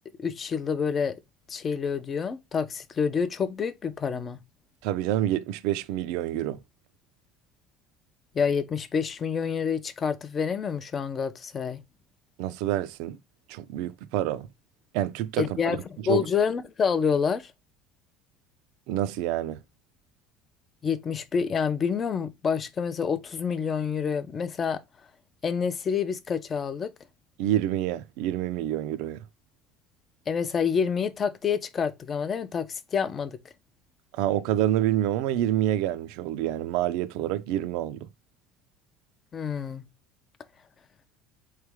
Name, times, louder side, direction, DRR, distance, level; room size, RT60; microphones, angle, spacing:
voice 1, 0.2-1.2 1.5-4.4 8.3-11.8 15.4-15.8 16.1-17.5 20.8-24.8 25.4-26.9 30.3-33.4 39.3-39.9, left 6 dB, 25° left, 0.5 m, -28 dB
voice 2, 4.8-6.6 12.4-13.2 13.5-14.5 14.9-15.8 16.1-16.3 18.9-19.6 27.4-29.2 34.1-38.0, right 12 dB, 70° right, 0.5 m, -27 dB
4.0 x 3.2 x 3.4 m
cardioid pair, 155°, 0 cm